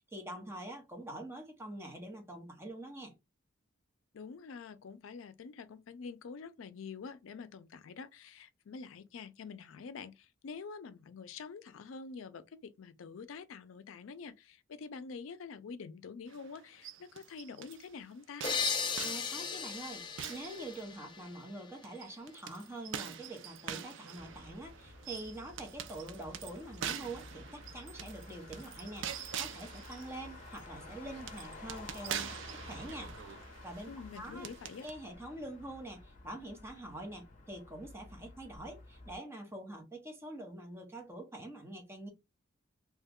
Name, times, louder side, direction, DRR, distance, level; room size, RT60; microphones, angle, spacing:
voice 1, 0.0-3.1 19.0-33.1 33.6-33.9 34.2-34.5 34.8-42.1, right 1 dB, 15° right, 0.9 m, -45 dB
voice 2, 4.1-18.5 33.9-34.9, left 5 dB, 85° left, 0.4 m, -47 dB
sound 1, 16.3-17.9 18.4-21.3 21.8-34.9, right 9 dB, 65° right, 0.4 m, -45 dB
sound 2, 18.4-22.0, left 6 dB, 25° left, 0.4 m, -37 dB
Motor vehicle (road), 24.2-39.2, left 2 dB, 40° left, 0.8 m, -52 dB
3.0 x 2.2 x 3.5 m
head